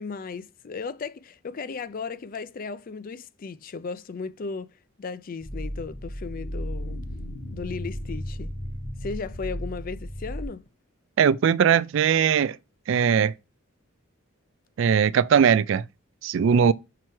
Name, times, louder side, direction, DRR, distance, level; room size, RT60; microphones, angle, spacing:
voice 1, 0.0-7.0 7.5-8.5 9.0-10.7 16.5-16.7, left 4 dB, 40° left, 0.4 m, -36 dB
sound 1, 5.4-10.5, equal, 90° left, 2.7 m, -34 dB
voice 2, 11.2-12.6 12.9-13.3 14.8-15.8 16.2-16.7, right 7 dB, 60° right, 0.3 m, -20 dB
5.9 x 4.6 x 4.5 m
head